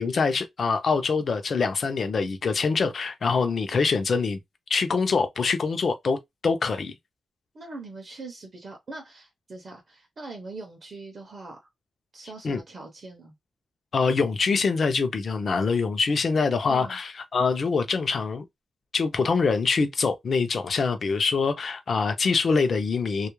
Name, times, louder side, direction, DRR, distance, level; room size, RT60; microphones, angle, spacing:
voice 1, 0.0-4.4 4.7-6.9 12.4-12.6 13.9-18.4 18.9-23.3, left 4 dB, 45° left, 0.5 m, -24 dB
voice 2, 7.5-11.7 12.1-13.3 16.3-17.0, right 3 dB, 40° right, 0.6 m, -42 dB
2.3 x 2.0 x 3.0 m
wide cardioid pair, 165°, 0 cm